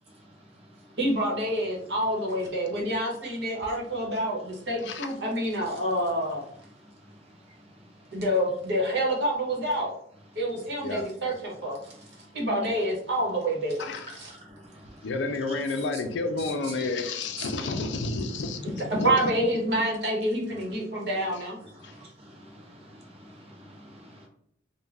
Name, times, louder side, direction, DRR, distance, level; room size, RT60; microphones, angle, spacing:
voice 1, 1.0-6.5 8.1-9.9 10.3-11.8 12.3-13.8 14.1-14.3 16.4-16.7 17.4-17.5 18.6-21.6, right 1 dB, 65° right, 0.9 m, -27 dB
voice 2, 4.8-5.1 10.8-11.0 13.8-14.1 15.0-19.1 21.8-22.0, left 3 dB, 70° left, 0.4 m, -30 dB
voice 3, 21.8-24.3, equal, 35° right, 0.6 m, -50 dB
2.4 x 2.1 x 3.2 m
head